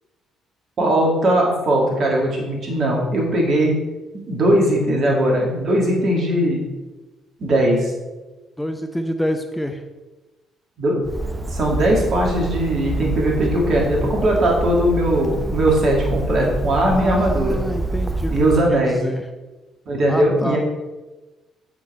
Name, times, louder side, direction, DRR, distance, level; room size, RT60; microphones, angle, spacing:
voice 1, 0.8-3.7 4.1-6.6 7.4-7.9 10.8-11.1 11.5-17.6 18.3-19.0 19.9-20.6, right 1 dB, 50° right, -1 dB, 2.5 m, -19 dB
voice 2, 8.6-9.8 16.9-18.3 18.7-19.2 20.1-20.6, equal, 5° left, 6 dB, 0.7 m, -27 dB
Bird, 11.0-18.7, right 2 dB, 15° right, 1.0 m, -26 dB
7.6 x 6.0 x 4.4 m, 1.1 s
figure-of-eight pair, 45°, 0 cm